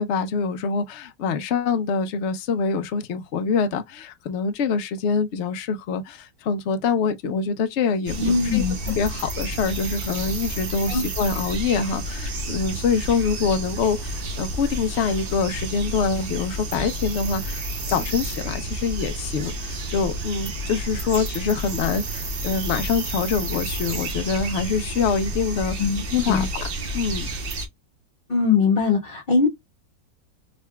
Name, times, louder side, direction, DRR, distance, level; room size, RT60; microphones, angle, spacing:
voice 1, 0.0-8.6 8.9-25.8 26.1-26.7 26.9-27.3, left 5 dB, 70° left, 0.6 m, -25 dB
sound 1, 8.1-27.7, right 1 dB, 45° right, 0.7 m, -30 dB
voice 2, 8.2-9.0 10.9-11.0 25.8-26.0 26.3-26.5 28.3-29.5, left 5 dB, 35° left, 1.3 m, -21 dB
3.9 x 3.3 x 2.2 m
omnidirectional pair, 1.9 m